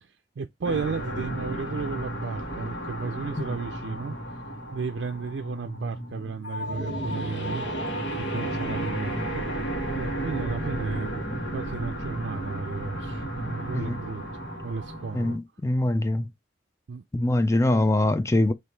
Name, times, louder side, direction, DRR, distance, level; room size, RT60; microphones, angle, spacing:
voice 1, 0.0-4.2 4.7-7.7 8.2-9.5 9.9-11.2 11.5-14.2 14.6-15.4 16.9-17.0, right 5 dB, 70° right, 0.4 m, -34 dB
sound 1, 0.6-15.4, right 1 dB, 75° left, 1.7 m, -33 dB
voice 2, 15.1-16.3 17.1-18.5, left 1 dB, 15° left, 0.4 m, -23 dB
4.8 x 3.1 x 3.2 m
head